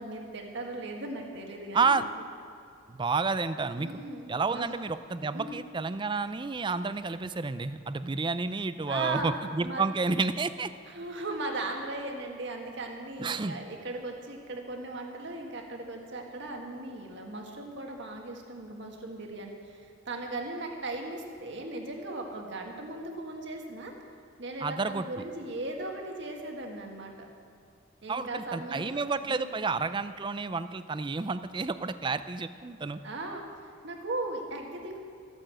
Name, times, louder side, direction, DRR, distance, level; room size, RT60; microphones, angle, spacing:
voice 1, 0.0-2.1 3.8-4.7 5.3-5.6 8.9-9.3 9.6-9.9 10.9-23.9 24.4-27.1 28.0-29.6 33.0-35.0, right 2 dB, 55° right, 2 dB, 1.8 m, -38 dB
voice 2, 1.7-2.0 2.9-3.9 4.3-10.7 13.2-13.6 24.6-25.1 28.1-33.0, right 4 dB, 25° right, 12 dB, 0.4 m, -30 dB
14.0 x 8.9 x 7.7 m, 2.5 s
head